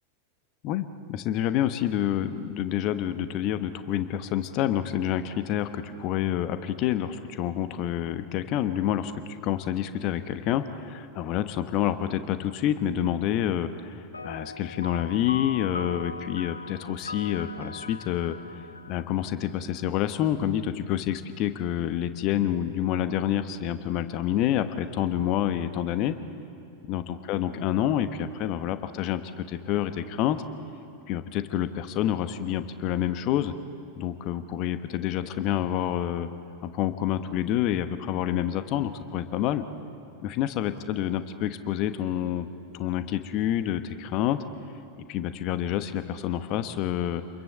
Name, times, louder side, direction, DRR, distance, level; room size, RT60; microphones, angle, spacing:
voice 1, 0.6-18.3 18.9-26.1 26.9-30.4 31.1-33.5 34.0-36.3 36.6-39.6 40.2-42.5 42.7-44.4 45.1-47.2, left 11 dB, 40° left, 11 dB, 1.1 m, -28 dB
sound 1, 14.1-19.9, left 4 dB, 80° left, 0.7 m, -40 dB
27.0 x 22.0 x 7.7 m, 2.9 s
figure-of-eight pair, 90°, 0 cm